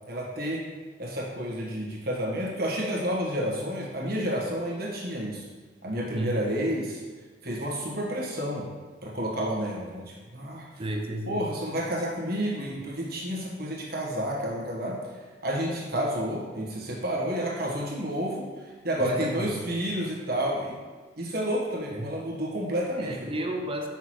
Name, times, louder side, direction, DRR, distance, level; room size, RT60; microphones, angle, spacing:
voice 1, 0.1-0.6 1.0-5.4 5.8-7.0 7.4-8.7 9.0-10.6 11.3-15.0 15.4-18.5 18.8-20.8 21.2-23.3, equal, 55° right, -3 dB, 1.2 m, -30 dB
voice 2, 6.1-6.4 10.8-11.4 19.0-19.5 21.9-22.1 23.0-23.9, right 1 dB, 30° right, 3 dB, 0.5 m, -33 dB
5.8 x 5.7 x 3.1 m, 1.4 s
head